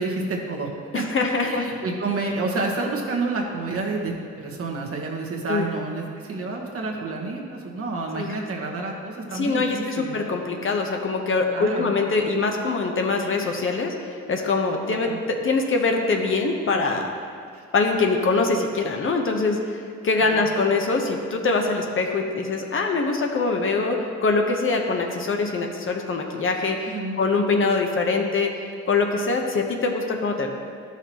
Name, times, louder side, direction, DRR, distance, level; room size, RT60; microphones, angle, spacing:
voice 1, 0.0-10.2 11.5-11.9 15.0-15.2 17.5-17.6 20.2-20.4 26.9-27.2, right 3 dB, 50° right, 0 dB, 1.3 m, -29 dB
voice 2, 0.9-1.6 5.5-5.6 8.1-8.3 9.3-17.1 17.7-30.5, left 3 dB, 45° left, 2 dB, 0.9 m, -23 dB
11.5 x 5.8 x 3.0 m, 2.3 s
cardioid pair, 90°, 30 cm